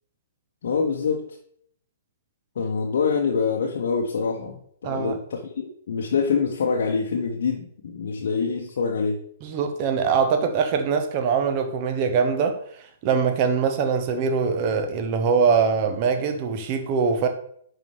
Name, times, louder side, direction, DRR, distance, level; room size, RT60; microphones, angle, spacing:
voice 1, 0.6-1.3 2.6-9.2, left 5 dB, 55° left, 0.9 m, -25 dB
voice 2, 4.8-5.2 9.4-12.6 13.0-17.3, right 5 dB, 35° right, 0.9 m, -22 dB
10.5 x 4.1 x 3.3 m
figure-of-eight pair, 115°, 0 cm